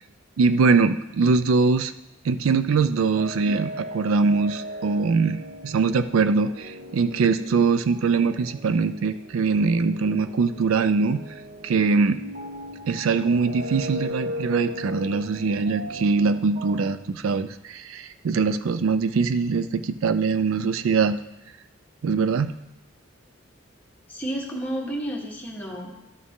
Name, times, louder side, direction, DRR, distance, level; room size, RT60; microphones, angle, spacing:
voice 1, 0.4-1.9 2.2-11.2 11.6-12.2 12.9-21.2 22.0-22.5, right 4 dB, 85° right, 12 dB, 0.4 m, -22 dB
sound 1, 3.2-16.9, equal, 45° right, 1.0 m, -37 dB
voice 2, 24.1-26.1, right 1 dB, 10° left, -2 dB, 1.5 m, -31 dB
12.5 x 6.2 x 3.7 m, 0.89 s
head